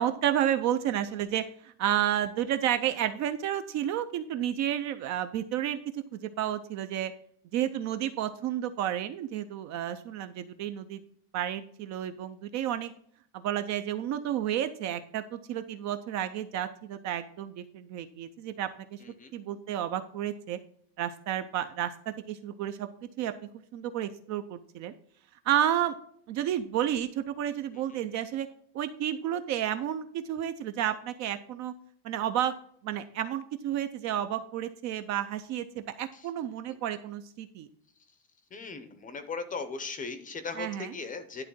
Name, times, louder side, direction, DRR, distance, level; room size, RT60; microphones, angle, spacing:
voice 1, 0.0-7.1 7.5-11.0 11.3-12.9 13.3-19.0 19.3-20.6 21.0-22.9 23.2-23.3 23.7-24.9 25.5-25.9 26.3-28.5 28.7-31.7 32.0-32.5 32.8-37.7 40.5-41.0, right 11 dB, 40° right, 9 dB, 0.4 m, -31 dB
voice 2, 38.5-41.4, left 4 dB, 20° left, 10 dB, 0.6 m, -37 dB
11.0 x 3.6 x 6.1 m, 0.63 s
cardioid pair, 165°, 45 cm